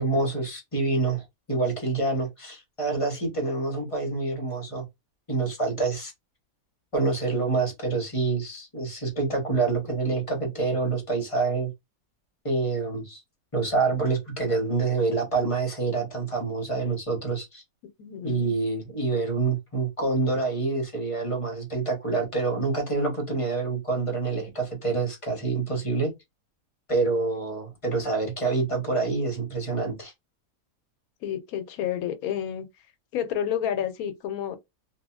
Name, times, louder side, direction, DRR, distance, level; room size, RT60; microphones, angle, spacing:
voice 1, 0.0-4.8 5.3-6.1 6.9-11.7 12.4-13.2 13.5-17.6 18.2-26.1 26.9-30.1, right 3 dB, 25° left, 0.9 m, -27 dB
voice 2, 18.0-18.5 31.2-32.7 33.1-34.6, left 9 dB, 80° left, 1.0 m, -30 dB
2.8 x 2.5 x 2.3 m
omnidirectional pair, 1.5 m